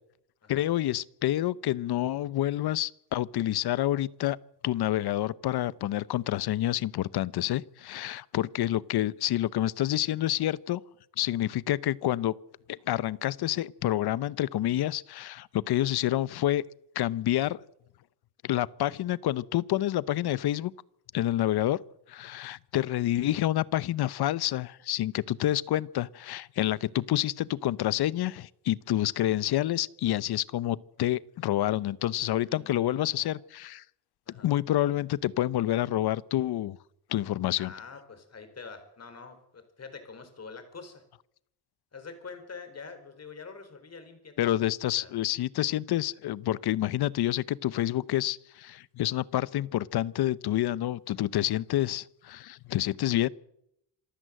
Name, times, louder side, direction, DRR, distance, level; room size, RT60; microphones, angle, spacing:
voice 1, 0.5-4.4 4.6-10.8 11.2-12.3 12.7-16.6 16.9-17.6 18.4-20.7 21.1-21.8 22.1-33.8 34.4-36.8 37.1-37.7 44.4-53.3, left 13 dB, 70° left, 0.8 m, -28 dB
voice 2, 32.1-33.3 34.3-34.5 37.6-41.0 41.9-44.6 45.0-45.1, left 4 dB, 40° left, 4.7 m, -46 dB
26.5 x 14.5 x 7.8 m
cardioid pair, 115°, 41 cm